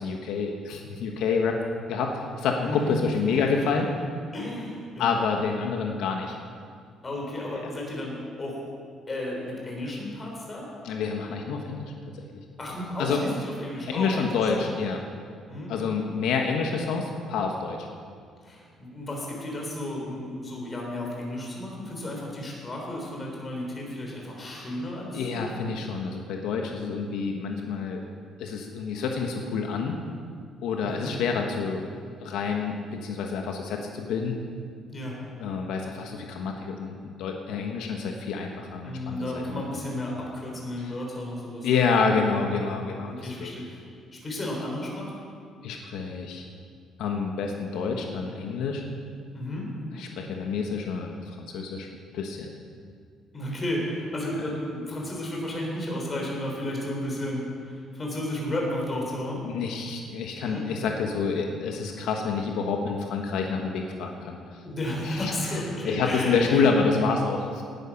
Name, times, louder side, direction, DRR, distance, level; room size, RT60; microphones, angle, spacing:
voice 1, 0.0-1.6 1.9-3.9 5.0-6.4 10.8-11.9 12.3-12.4 13.0-13.2 13.9-15.0 15.7-17.9 24.5-24.7 25.1-28.0 28.4-30.0 30.6-31.9 32.2-34.4 35.4-39.6 41.6-43.6 45.6-46.4 47.0-48.8 50.0-51.9 52.1-52.5 59.4-64.4 65.0-65.3 65.8-67.6, left 5 dB, 80° left, 2 dB, 1.4 m, -28 dB
voice 2, 2.6-2.9 4.3-5.1 7.0-8.6 9.1-10.7 12.6-14.7 15.5-15.7 18.4-25.9 30.8-31.2 34.9-35.2 38.8-42.4 43.0-43.8 44.1-45.1 49.3-49.7 53.3-59.5 60.4-60.6 64.6-67.1, left 1 dB, 20° left, -1 dB, 3.7 m, -33 dB
19.0 x 9.3 x 6.0 m, 2.2 s
cardioid pair, 170°, 0 cm